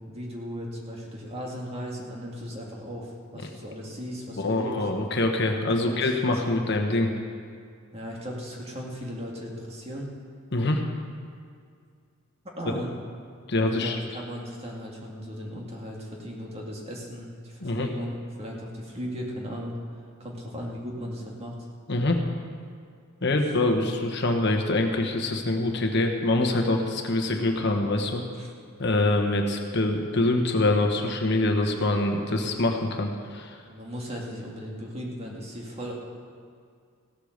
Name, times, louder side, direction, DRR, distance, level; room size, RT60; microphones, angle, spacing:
voice 1, 0.1-4.9 5.8-6.6 7.9-10.1 12.4-13.0 13.7-18.1 18.4-19.7 20.2-21.5 23.4-23.5 28.3-28.5 33.7-35.9, equal, 30° right, -2 dB, 2.1 m, -37 dB
voice 2, 4.4-7.1 10.5-10.8 13.5-14.0 17.6-17.9 21.9-22.2 23.2-28.2 28.8-33.6, left 2 dB, 55° left, 3 dB, 1.3 m, -25 dB
16.0 x 8.4 x 6.6 m, 2.2 s
head